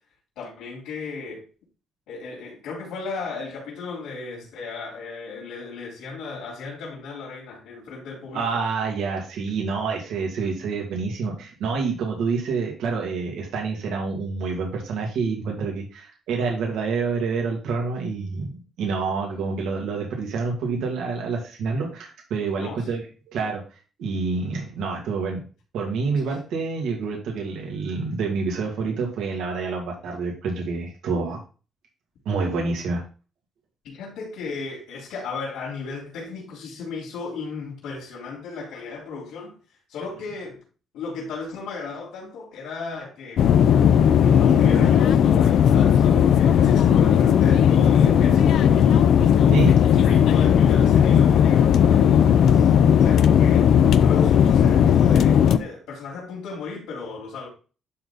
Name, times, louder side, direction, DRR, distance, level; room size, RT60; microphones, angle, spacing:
voice 1, 0.4-1.5 2.1-8.5 22.6-23.0 26.2-26.4 33.8-39.6 39.9-40.6 40.9-43.5 44.1-49.1 49.8-53.7 54.0-57.5, left 4 dB, 90° left, 4.1 m, -35 dB
voice 2, 8.3-18.5 18.8-23.0 23.3-23.6 24.0-25.4 25.7-31.4 32.2-33.0 49.5-49.7, right 4 dB, 80° right, 2.5 m, -27 dB
sound 1, 43.4-55.6, left 8 dB, 60° left, 0.5 m, -16 dB
11.5 x 4.1 x 4.0 m
cardioid pair, 155°, 0 cm